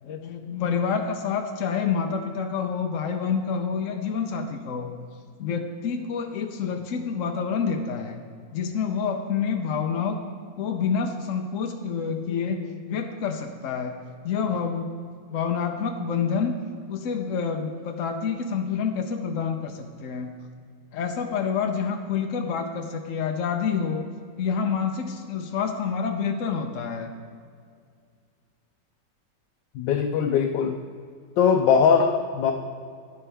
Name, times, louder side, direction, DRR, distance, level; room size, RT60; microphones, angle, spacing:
voice 1, 0.0-4.9 5.4-8.2 8.5-10.2 10.6-13.9 14.2-15.0 15.3-16.5 16.9-20.3 20.9-24.1 24.4-27.1, left 6 dB, 65° left, 4 dB, 0.8 m, -28 dB
voice 2, 29.7-30.8 31.4-32.5, left 6 dB, 85° left, 4 dB, 1.3 m, -20 dB
11.5 x 9.8 x 3.4 m, 2.1 s
omnidirectional pair, 1.9 m